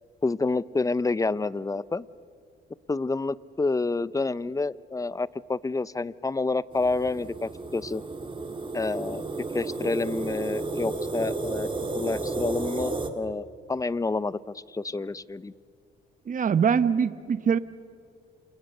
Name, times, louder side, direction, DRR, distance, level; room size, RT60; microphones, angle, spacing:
voice 1, 0.2-2.1 2.9-8.0 8.7-9.2 9.5-11.7 11.9-15.5, left 3 dB, 15° left, 18 dB, 0.7 m, -28 dB
sound 1, 6.7-13.1, right 3 dB, 25° right, 2.3 m, -32 dB
voice 2, 16.3-17.6, right 7 dB, 40° right, 13 dB, 0.9 m, -23 dB
29.0 x 27.5 x 6.6 m, 2.3 s
cardioid pair, 90°, 20 cm